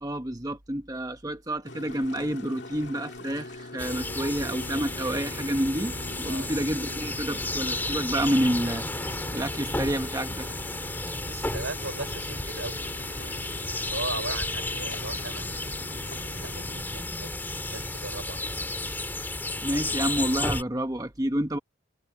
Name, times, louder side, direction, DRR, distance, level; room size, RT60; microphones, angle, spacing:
voice 1, 0.0-10.5 19.6-21.6, right 1 dB, 20° right, 1.0 m, -29 dB
sound 1, 1.6-16.8, left 2 dB, 60° left, 2.4 m, -44 dB
sound 2, 3.8-20.6, left 2 dB, 10° left, 2.8 m, -33 dB
voice 2, 6.2-6.5 11.3-12.8 13.2-15.7 16.4-17.3 17.7-18.5, right 3 dB, 80° right, 4.7 m, -38 dB
head